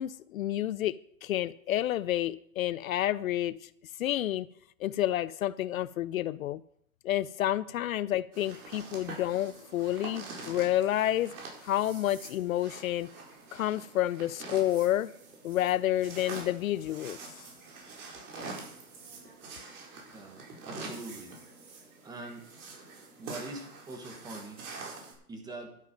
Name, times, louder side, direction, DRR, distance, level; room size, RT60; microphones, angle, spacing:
voice 1, 0.0-3.7 4.0-4.5 4.8-6.6 7.0-11.3 11.6-13.1 13.5-15.1 15.4-17.2 18.4-18.5, left 13 dB, 65° left, 0.5 m, -29 dB
sound 1, 8.3-25.1, right 3 dB, 70° right, 4.6 m, -45 dB
voice 2, 20.1-21.3 22.0-22.5 23.2-24.7 25.3-25.8, right 2 dB, 10° right, 1.4 m, -43 dB
11.5 x 10.5 x 5.2 m
hypercardioid pair, 155°, 45 cm